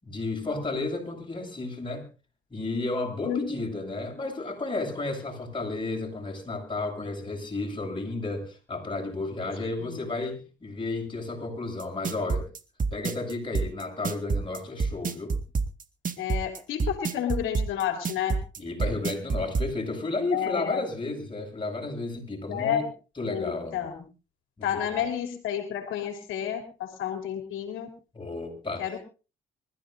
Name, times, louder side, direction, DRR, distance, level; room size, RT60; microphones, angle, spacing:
voice 1, 0.0-2.0 2.5-12.5 12.9-15.4 18.6-22.8 23.2-23.8 24.6-24.7 24.9-25.1 28.1-28.8, left 2 dB, 25° left, 1 dB, 7.9 m, -32 dB
sound 1, 11.8-19.7, right 4 dB, 40° right, 2.0 m, -27 dB
voice 2, 16.2-18.4 20.3-20.8 22.5-22.9 23.3-24.0 24.6-27.9 28.8-29.0, left 9 dB, 90° left, 4 dB, 3.3 m, -30 dB
25.0 x 15.0 x 2.7 m, 0.33 s
cardioid pair, 90°, 20 cm